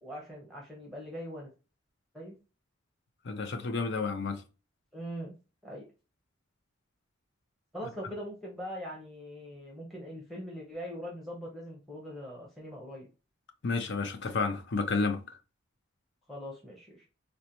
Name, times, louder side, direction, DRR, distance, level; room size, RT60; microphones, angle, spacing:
voice 1, 0.0-1.5 2.1-2.4 4.9-5.3 5.6-5.9 7.7-13.1 16.3-17.0, equal, ahead, 0.8 m, -41 dB
voice 2, 3.2-4.4 13.6-15.2, left 4 dB, 60° left, 0.6 m, -30 dB
3.9 x 2.2 x 2.9 m
head